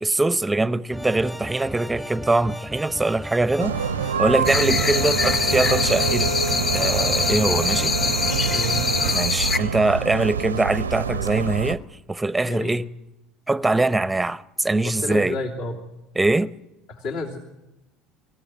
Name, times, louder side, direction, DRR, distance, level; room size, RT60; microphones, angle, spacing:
voice 1, 0.0-3.8 4.2-6.3 6.7-8.0 9.1-11.8 12.1-12.9 13.5-15.4 16.2-16.5, right 2 dB, 10° right, 0.8 m, -22 dB
sound 1, 0.9-9.2, left 1 dB, 10° left, 1.1 m, -33 dB
sound 2, 3.6-11.7, right 6 dB, 85° right, 0.7 m, -26 dB
sound 3, 4.5-9.6, left 4 dB, 40° left, 1.5 m, -24 dB
voice 2, 8.5-8.9 12.4-12.8 14.8-15.8 16.9-17.4, left 2 dB, 60° left, 2.9 m, -30 dB
26.0 x 15.5 x 9.6 m
figure-of-eight pair, 65°, 0 cm